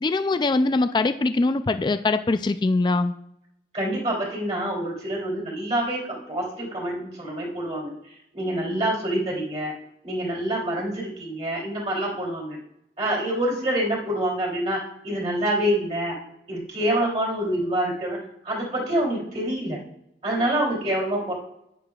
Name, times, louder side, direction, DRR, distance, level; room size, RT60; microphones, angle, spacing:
voice 1, 0.0-3.1, left 3 dB, 25° left, 10 dB, 0.3 m, -22 dB
voice 2, 3.7-9.7 10.0-12.6 13.0-16.1 16.5-19.8 20.2-21.3, right 1 dB, 40° right, -4 dB, 3.1 m, -26 dB
11.5 x 9.4 x 2.4 m, 0.78 s
head